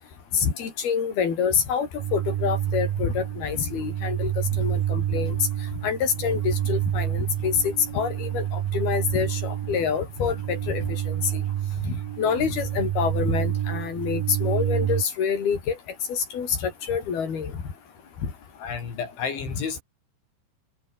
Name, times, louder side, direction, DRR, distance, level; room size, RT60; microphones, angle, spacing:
voice 1, 0.3-4.3 4.6-5.4 5.8-10.8 11.3-11.4 11.8-15.8 16.1-17.5, left 7 dB, 55° left, 6.5 m, -26 dB
sound 1, 2.0-15.0, right 11 dB, 60° right, 3.0 m, -28 dB
voice 2, 18.6-19.8, left 6 dB, 80° left, 7.7 m, -31 dB
omnidirectional pair, 5.3 m